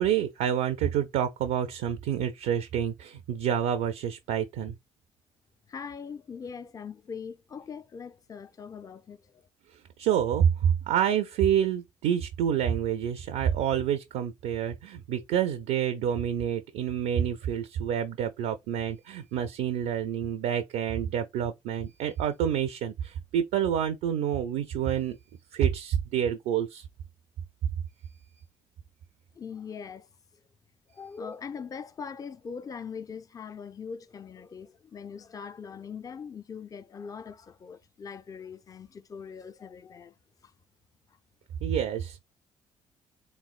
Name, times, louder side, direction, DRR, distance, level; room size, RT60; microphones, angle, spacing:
voice 1, 0.0-4.8 10.0-25.2 25.5-26.8 41.6-42.2, right 9 dB, 60° right, 0.4 m, -28 dB
voice 2, 5.7-9.2 29.4-30.1 30.9-40.1, left 6 dB, 25° left, 0.4 m, -41 dB
3.5 x 3.1 x 2.4 m
figure-of-eight pair, 45°, 16 cm